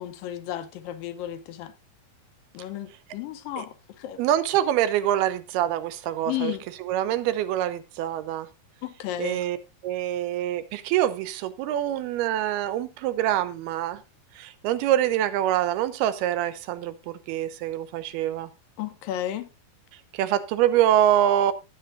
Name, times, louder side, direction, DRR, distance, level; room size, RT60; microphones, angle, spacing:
voice 1, 0.0-1.7 2.5-4.2 6.3-6.6 8.8-9.4 18.8-19.5, left 12 dB, 75° left, 2.4 m, -33 dB
voice 2, 4.2-6.5 6.8-8.5 9.2-9.6 9.8-14.0 14.4-18.5 20.1-21.5, right 12 dB, 85° right, 2.8 m, -25 dB
18.0 x 7.6 x 2.6 m
omnidirectional pair, 4.4 m